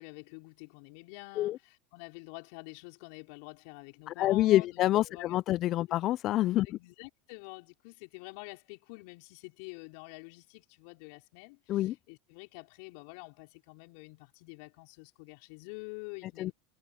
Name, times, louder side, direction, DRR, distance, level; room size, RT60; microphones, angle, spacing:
voice 1, 0.0-5.4 6.6-16.5, left 30 dB, 65° left, 4.9 m, -47 dB
voice 2, 4.1-6.8 11.7-11.9 16.4-16.5, left 14 dB, 50° left, 0.5 m, -27 dB
hypercardioid pair, 95°, 0 cm